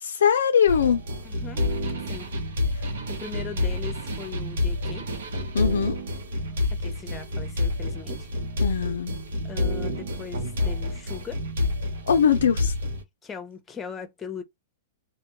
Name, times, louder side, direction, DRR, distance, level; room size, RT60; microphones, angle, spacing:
voice 1, 0.0-1.0 5.5-6.0 8.6-9.1 12.1-12.7, left 7 dB, 85° left, 0.3 m, -21 dB
sound 1, 0.7-13.0, left 2 dB, 75° right, 0.8 m, -28 dB
voice 2, 1.2-1.8 2.1-2.3 2.7-5.1 6.7-8.3 9.4-11.4 13.2-14.4, left 6 dB, 15° left, 0.6 m, -39 dB
2.1 x 2.1 x 2.9 m
hypercardioid pair, 135°, 0 cm